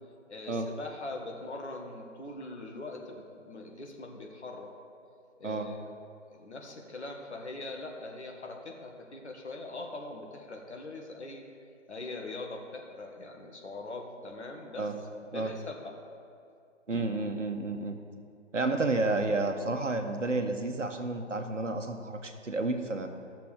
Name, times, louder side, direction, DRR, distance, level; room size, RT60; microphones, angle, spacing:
voice 1, 0.3-4.7 5.4-5.8 6.3-11.4 11.9-14.9 15.2-15.9 16.9-17.0, left 2 dB, 65° left, 1 dB, 1.7 m, -42 dB
voice 2, 16.9-18.0 18.5-23.1, right 2 dB, 80° right, 6 dB, 1.2 m, -31 dB
14.0 x 6.8 x 5.0 m, 2.4 s
figure-of-eight pair, 135°, 37 cm